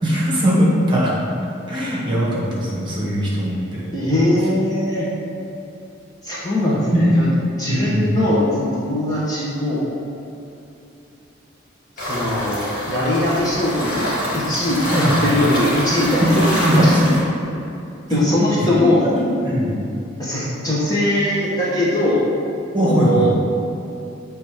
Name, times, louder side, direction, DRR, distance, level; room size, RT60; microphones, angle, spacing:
voice 1, 0.0-1.1 1.7-3.9 6.9-7.1 7.7-8.1 14.9-15.3 16.2-17.2 18.1-18.2 18.6-19.7 22.7-23.3, equal, 25° right, -6 dB, 1.4 m, -19 dB
voice 2, 3.9-5.1 6.2-7.3 7.6-9.8 12.0-16.9 18.1-19.0 20.2-22.2 22.8-23.3, left 1 dB, 20° left, -7 dB, 0.9 m, -20 dB
sound 1, 12.0-17.2, equal, 50° left, 1.5 m, -25 dB
7.1 x 3.3 x 4.8 m, 2.8 s
head